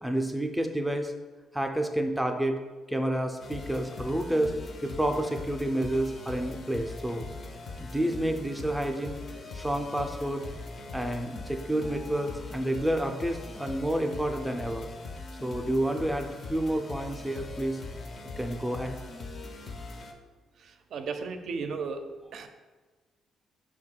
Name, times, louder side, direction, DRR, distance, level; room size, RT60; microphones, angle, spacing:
voice 1, 0.0-1.1 1.5-2.6 2.9-4.5 4.8-7.3 7.8-9.2 9.5-10.4 10.9-14.9 15.4-17.8 18.4-18.9, right 1 dB, 5° right, 4 dB, 0.4 m, -29 dB
sound 1, 3.4-20.1, left 3 dB, 50° left, 0.5 m, -41 dB
voice 2, 20.6-22.0 22.3-22.5, right 5 dB, 65° right, 7 dB, 0.4 m, -35 dB
4.6 x 2.2 x 4.3 m, 1.3 s
cardioid pair, 90°, 0 cm